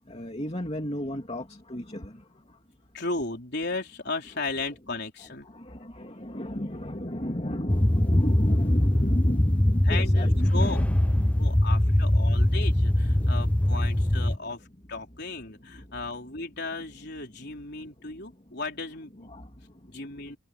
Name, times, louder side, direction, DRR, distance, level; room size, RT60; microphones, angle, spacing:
voice 1, 0.0-2.6 5.4-12.5 13.1-13.9 14.4-14.6 15.6-16.1 17.7-18.6 19.2-20.2, equal, 30° left, 2.8 m, -35 dB
voice 2, 2.9-5.5 9.9-10.8 11.4-19.3 19.9-20.4, left 3 dB, 50° left, 4.3 m, -35 dB
sound 1, 7.7-14.4, left 1 dB, 5° left, 0.3 m, -22 dB
head